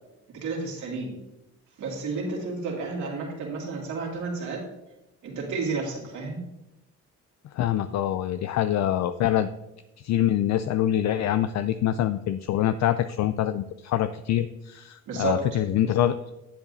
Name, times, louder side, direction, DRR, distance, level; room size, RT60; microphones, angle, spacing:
voice 1, 0.3-1.1 1.8-4.6 5.2-6.4 15.1-15.4, right 4 dB, 75° right, -3 dB, 2.6 m, -31 dB
voice 2, 7.5-9.5 10.0-16.2, left 11 dB, 65° left, 11 dB, 0.4 m, -25 dB
10.0 x 8.1 x 2.7 m, 0.92 s
cardioid pair, 90°, 30 cm